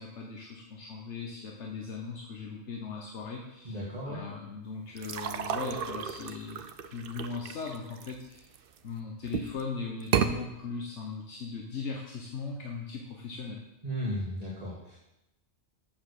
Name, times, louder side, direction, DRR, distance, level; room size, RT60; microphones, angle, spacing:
voice 1, 0.0-8.5 8.8-13.6, left 4 dB, 80° left, -1 dB, 1.3 m, -39 dB
voice 2, 3.6-4.2 13.8-15.0, equal, 35° right, -6 dB, 2.0 m, -35 dB
sound 1, 5.0-8.8 9.2-9.6 10.0-10.3, right 7 dB, 60° right, 0.8 m, -32 dB
7.6 x 7.1 x 6.6 m, 0.92 s
omnidirectional pair, 1.2 m